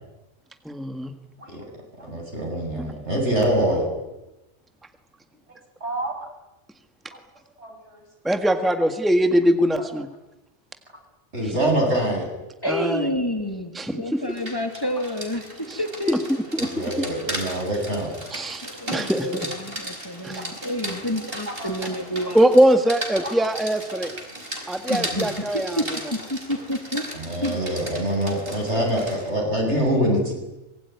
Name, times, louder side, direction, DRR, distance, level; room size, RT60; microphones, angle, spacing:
voice 1, 0.6-1.1 2.8-2.9 8.2-10.1 12.7-13.1 13.7-14.2 15.7-15.8 16.1-16.2 16.5-16.7 18.3-18.6 18.9-19.5 20.2-20.4 22.3-24.1 24.7-25.8, right 1 dB, ahead, 7 dB, 1.6 m, -21 dB
voice 2, 2.0-3.9 5.8-6.2 7.6-8.0 9.8-9.9 11.3-12.3 16.6-18.2 21.5-21.7 23.2-23.5 25.1-25.3 27.1-30.3, right 1 dB, 75° right, 2 dB, 8.3 m, -25 dB
voice 3, 12.6-16.3 18.0-18.1 18.5-22.4 24.9-27.1 27.4-27.6, equal, 20° left, 5 dB, 2.8 m, -29 dB
Rain, 14.2-29.3, right 1 dB, 50° right, 5.2 m, -36 dB
25.0 x 22.0 x 9.6 m, 0.98 s
omnidirectional pair, 1.2 m